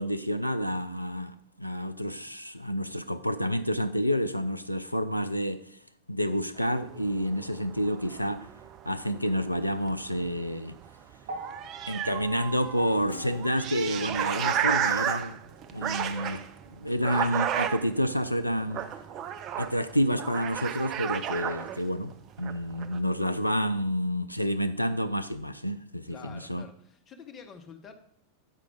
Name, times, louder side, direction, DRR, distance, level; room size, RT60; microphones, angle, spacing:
voice 1, 0.0-5.8 6.1-8.5 8.9-10.8 11.9-15.4 15.7-18.8 19.6-26.6, equal, 90° left, 10 dB, 0.4 m, -29 dB
sound 1, 6.6-10.9 11.1-11.2 11.4-22.1 22.4-23.0, right 9 dB, 35° right, 0.4 m, -33 dB
sound 2, 11.2-19.6 20.6-20.7, right 3 dB, 55° right, 0.9 m, -47 dB
Strum, 13.1-18.0, left 7 dB, 60° left, 0.8 m, -54 dB
voice 2, 26.1-27.9, left 5 dB, 25° left, 6 dB, 0.9 m, -47 dB
8.1 x 4.7 x 4.0 m, 0.66 s
figure-of-eight pair, 90°, 0 cm